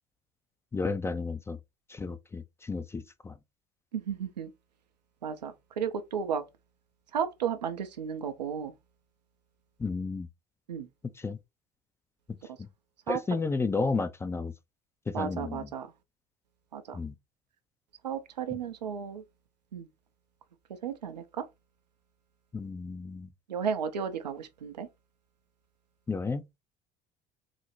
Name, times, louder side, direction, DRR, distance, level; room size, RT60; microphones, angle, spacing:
voice 1, 0.7-1.6 1.9-3.4 9.8-10.3 11.2-11.4 13.1-14.5 15.1-15.7 16.9-17.1 22.5-23.3 26.1-26.5, left 4 dB, 10° left, 0.3 m, -32 dB
voice 2, 3.9-4.5 5.2-5.5 5.8-6.4 7.1-8.7 10.7-10.9 13.1-13.2 15.1-15.9 16.7-17.0 18.0-19.2 19.7-19.9 20.8-21.2 23.5-24.9, right 7 dB, 80° right, 0.5 m, -33 dB
3.9 x 2.0 x 3.1 m
figure-of-eight pair, 60°, 21 cm